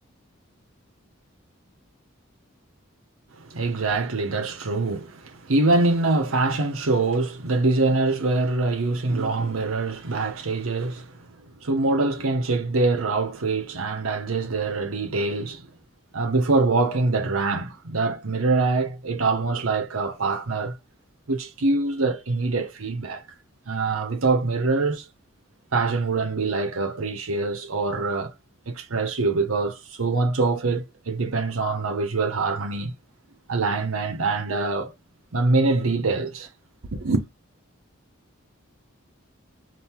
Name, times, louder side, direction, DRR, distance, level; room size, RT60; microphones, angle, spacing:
voice 1, 3.4-11.4 11.6-15.7 16.1-20.8 21.3-23.2 23.7-25.1 25.7-28.3 28.7-32.9 33.5-34.9 35.3-36.5 36.9-37.3, right 3 dB, 85° right, 0.9 m, -24 dB
4.3 x 2.7 x 3.6 m
head